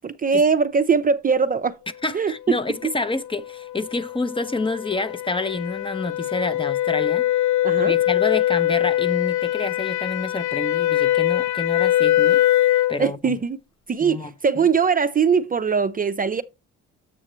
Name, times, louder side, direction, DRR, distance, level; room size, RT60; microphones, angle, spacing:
voice 1, 0.0-1.8 2.1-2.3 2.8-2.9 7.6-7.9 13.0-13.6 13.9-16.4, right 5 dB, 30° right, 0.5 m, -21 dB
voice 2, 2.0-7.3 7.8-12.4 12.9-13.3 14.0-14.3, left 3 dB, 15° left, 0.6 m, -28 dB
sound 1, 3.1-13.0, left 14 dB, 70° left, 0.7 m, -22 dB
7.5 x 6.3 x 3.0 m
cardioid pair, 90°, 30 cm